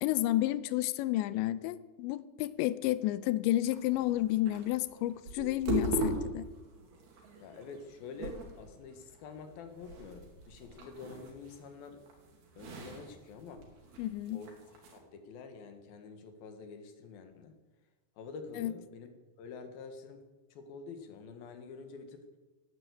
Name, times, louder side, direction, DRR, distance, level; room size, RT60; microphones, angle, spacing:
voice 1, 0.0-6.5 14.0-14.4 18.6-18.7, left 15 dB, 85° left, 15 dB, 3.0 m, -31 dB
sound 1, 3.7-15.0, right 3 dB, 65° right, 4.4 m, -41 dB
voice 2, 7.4-12.0 12.6-13.7 14.3-14.5 14.9-17.6 18.2-19.1 19.4-20.2 20.5-22.3, left 5 dB, 65° left, 7 dB, 3.1 m, -47 dB
16.5 x 9.8 x 8.4 m, 1.2 s
omnidirectional pair, 5.1 m